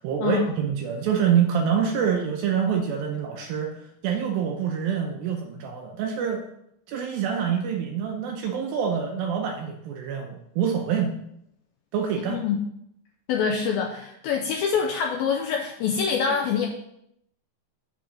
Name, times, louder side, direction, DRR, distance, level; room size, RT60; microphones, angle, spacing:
voice 1, 0.0-6.4 6.9-11.1 11.9-12.4, right 7 dB, 80° right, 2 dB, 2.2 m, -26 dB
voice 2, 12.3-12.6 13.3-16.7, left 6 dB, 85° left, 1 dB, 2.1 m, -25 dB
8.7 x 3.8 x 6.2 m, 0.76 s
omnidirectional pair, 4.9 m